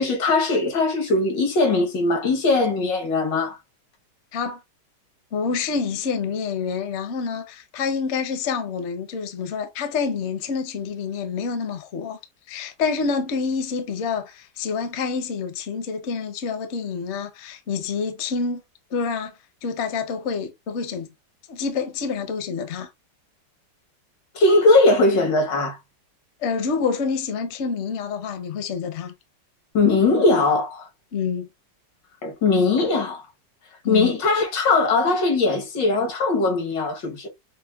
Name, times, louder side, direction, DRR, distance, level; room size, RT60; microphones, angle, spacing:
voice 1, 0.0-3.6 24.4-25.8 29.7-30.9 32.2-33.2 33.9-37.3, left 3 dB, 80° left, 1.7 m, -20 dB
voice 2, 5.3-12.2 12.5-18.6 18.9-19.3 19.6-21.1 21.5-22.9 26.4-29.1 31.1-31.5 33.8-34.1, left 5 dB, 60° left, 0.7 m, -27 dB
6.0 x 2.1 x 2.3 m
omnidirectional pair, 1.9 m